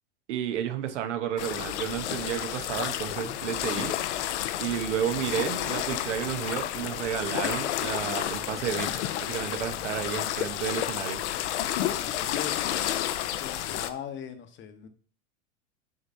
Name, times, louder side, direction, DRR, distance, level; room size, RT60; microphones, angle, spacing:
voice 1, 0.3-3.9 4.6-8.9 9.2-11.2, right 9 dB, 80° right, 9 dB, 1.1 m, -31 dB
sound 1, 1.4-13.9, left 12 dB, 75° left, 0.7 m, -31 dB
voice 2, 11.8-12.7 13.4-14.9, left 9 dB, 35° left, 9 dB, 1.0 m, -40 dB
7.2 x 3.2 x 5.5 m, 0.43 s
hypercardioid pair, 115°, 35 cm